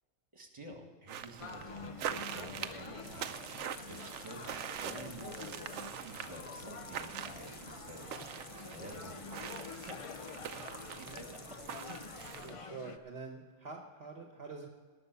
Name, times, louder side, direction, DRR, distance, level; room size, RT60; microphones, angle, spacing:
voice 1, 0.3-5.5 5.9-8.1 8.7-9.1 9.7-10.0 10.9-11.6 11.9-12.0, right 1 dB, 20° right, 2 dB, 2.0 m, -50 dB
sound 1, 1.1-12.7, right 9 dB, 70° right, 0.9 m, -44 dB
sound 2, 1.4-13.0, left 4 dB, 50° left, 0.3 m, -48 dB
sound 3, 3.0-12.6, left 3 dB, 25° left, 0.7 m, -54 dB
voice 2, 5.0-5.4 8.8-9.0 12.4-14.7, right 4 dB, 50° right, 2 dB, 1.3 m, -47 dB
18.5 x 6.2 x 6.8 m, 1.5 s
omnidirectional pair, 1.4 m